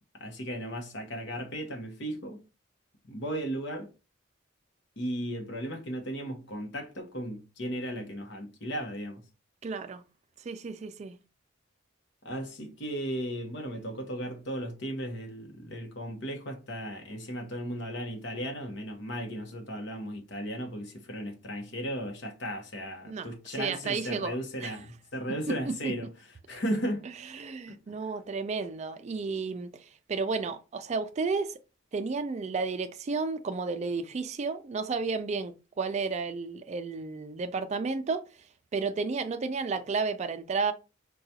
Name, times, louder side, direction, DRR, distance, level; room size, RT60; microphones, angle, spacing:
voice 1, 0.2-2.4 3.1-3.9 5.0-9.2 12.2-26.1 26.5-27.0 27.7-27.8, equal, 60° left, 0.9 m, -36 dB
voice 2, 9.6-10.0 10.4-11.2 23.1-23.3 23.6-24.8 25.8-25.9 27.3-31.6 31.9-38.2 38.7-40.7, right 4 dB, 35° right, 0.3 m, -32 dB
4.8 x 2.3 x 2.8 m
head